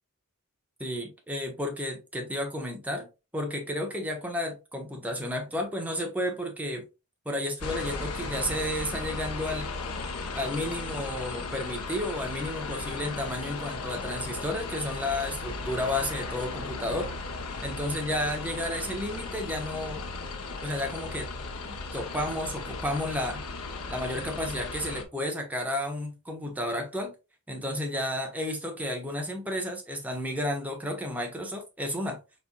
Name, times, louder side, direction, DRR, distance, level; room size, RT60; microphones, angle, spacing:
voice 1, 0.8-3.1 3.3-6.9 7.2-9.7 10.3-17.1 17.6-20.0 20.6-21.3 21.6-23.4 23.9-27.1 27.5-32.2, left 1 dB, 5° right, 0.9 m, -32 dB
sound 1, 7.6-25.0, left 3 dB, 75° left, 0.8 m, -36 dB
4.3 x 4.2 x 2.2 m
head